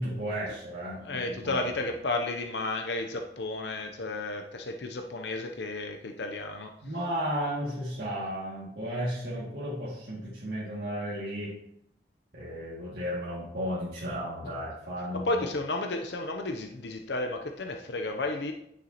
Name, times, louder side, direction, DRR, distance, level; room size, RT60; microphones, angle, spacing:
voice 1, 0.0-1.7 6.8-11.5 12.3-15.5, equal, 75° right, -9 dB, 2.1 m, -34 dB
voice 2, 1.0-6.7 14.4-14.6 15.1-18.5, left 2 dB, 80° left, 4 dB, 0.6 m, -32 dB
9.5 x 6.5 x 2.9 m, 0.77 s
head